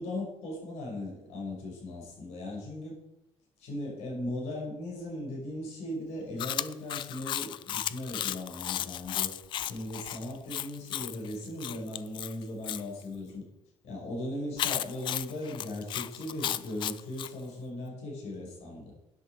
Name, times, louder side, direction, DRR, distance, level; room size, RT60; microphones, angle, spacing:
voice 1, 0.0-2.9 3.6-9.3 9.6-13.5 13.8-18.9, left 1 dB, 75° left, -1 dB, 5.5 m, -38 dB
Chewing mastication, 6.4-12.8 14.6-17.3, left 11 dB, 45° left, 0.4 m, -34 dB
12.5 x 9.4 x 4.8 m, 0.89 s
cardioid pair, 170°, 11 cm